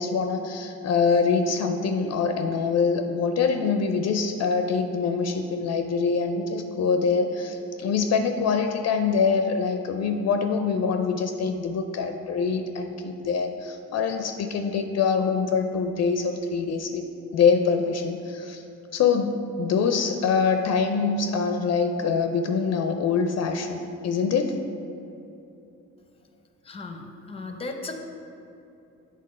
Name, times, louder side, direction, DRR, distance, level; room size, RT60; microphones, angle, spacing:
voice 1, 0.0-17.1 17.3-18.6 18.9-24.6, left 5 dB, 60° left, 6 dB, 0.5 m, -24 dB
voice 2, 26.6-28.0, left 3 dB, 20° left, 5 dB, 0.7 m, -36 dB
7.5 x 3.6 x 5.4 m, 2.8 s
cardioid pair, 90°, 30 cm